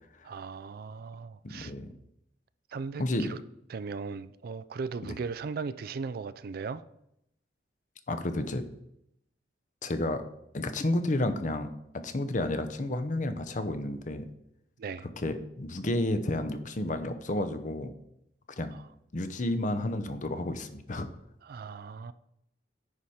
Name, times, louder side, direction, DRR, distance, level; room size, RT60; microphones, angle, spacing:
voice 1, 0.2-1.7 2.7-3.4 3.7-6.8 14.8-15.1 18.7-18.9 21.4-22.1, right 5 dB, 55° right, 0.4 m, -38 dB
voice 2, 1.4-1.9 3.0-3.3 5.0-5.2 8.1-8.6 9.8-10.2 10.5-14.3 15.2-17.9 18.6-18.8 19.1-21.1, left 1 dB, 45° left, 0.7 m, -31 dB
9.7 x 4.9 x 4.3 m
head